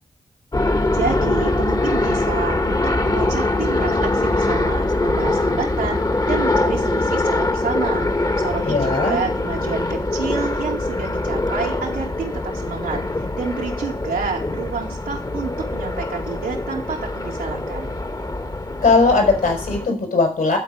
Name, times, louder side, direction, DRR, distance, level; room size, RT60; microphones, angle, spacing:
sound 1, 0.5-19.9, left 2 dB, 25° left, 1.4 m, -23 dB
voice 1, 0.9-8.1 8.4-13.0 13.4-18.0, right 5 dB, 90° right, -1 dB, 2.5 m, -29 dB
voice 2, 8.6-9.2 18.8-20.6, left 3 dB, 65° left, 4 dB, 4.3 m, -18 dB
11.5 x 4.5 x 8.1 m, 0.37 s
supercardioid pair, 45°, 15 cm